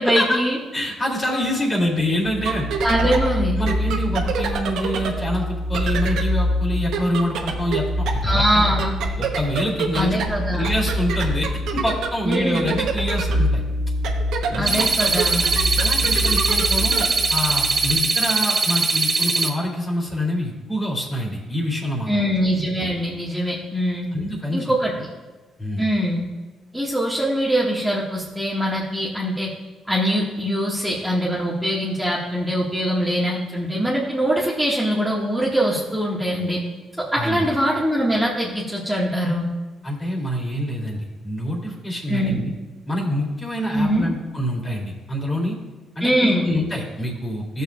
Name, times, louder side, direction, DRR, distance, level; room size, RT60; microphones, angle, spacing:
voice 1, 0.0-0.6 2.8-3.6 8.2-8.9 9.9-10.6 12.2-12.7 14.5-15.4 22.1-24.1 24.5-24.9 25.8-26.3 26.7-29.5 29.9-36.6 37.1-39.5 42.1-42.4 43.7-44.1 46.0-46.5, equal, 5° right, -5 dB, 1.6 m, -22 dB
voice 2, 0.7-2.7 3.0-3.1 3.5-8.8 9.2-11.5 11.7-13.6 14.5-14.9 15.8-22.1 24.1-24.7 25.6-25.9 37.2-37.5 39.8-42.5 42.9-45.6 45.9-47.6, left 1 dB, 30° left, -2 dB, 2.8 m, -26 dB
sound 1, 2.2-17.9, right 1 dB, 85° right, 0.9 m, -25 dB
sound 2, 14.7-19.5, right 4 dB, 40° right, 0.8 m, -21 dB
14.5 x 6.8 x 2.4 m, 1.2 s
cardioid pair, 90°, 0 cm